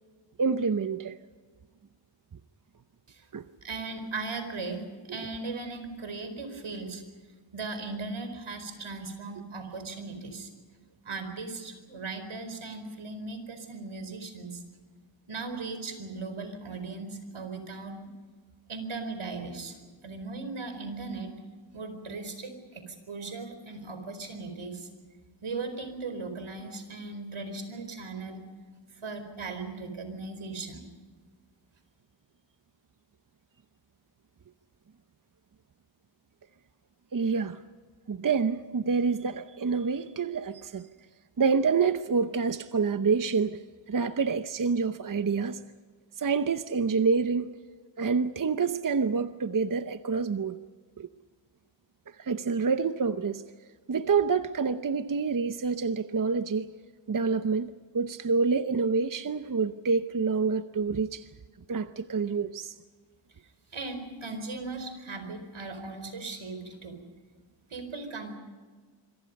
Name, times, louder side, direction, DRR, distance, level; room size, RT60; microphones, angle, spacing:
voice 1, 0.4-1.2 3.3-3.5 37.1-37.6 38.1-40.9 41.4-45.6 46.2-47.5 48.0-50.6 51.0-51.1 52.2-53.4 53.9-56.7 57.1-61.2 61.7-62.7, right 5 dB, 40° right, 0.8 m, -27 dB
voice 2, 3.6-7.0 7.5-10.5 11.0-14.6 15.3-18.1 18.7-19.8 20.0-21.3 21.7-24.9 25.4-28.5 28.9-30.8 63.7-67.0 67.7-68.4, right 3 dB, 80° right, 4.7 m, -38 dB
26.5 x 24.5 x 5.4 m
wide cardioid pair, 95°, 48 cm